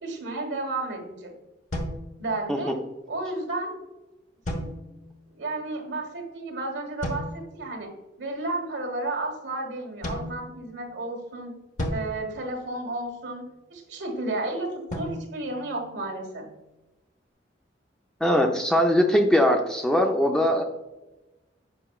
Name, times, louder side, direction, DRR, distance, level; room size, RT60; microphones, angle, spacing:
voice 1, 0.0-1.3 2.2-2.7 3.1-3.7 4.5-4.7 5.3-7.9 8.2-11.5 11.9-13.4 13.7-14.7 14.9-16.4, right 2 dB, 70° right, 3 dB, 1.5 m, -32 dB
sound 1, 1.7-2.8 4.4-5.3 7.0-7.7 10.0-11.1 11.8-13.2 14.9-16.4, equal, 40° left, 1.0 m, -35 dB
voice 2, 18.2-20.6, equal, 5° left, 2 dB, 0.4 m, -21 dB
7.5 x 5.5 x 2.4 m, 1.0 s
head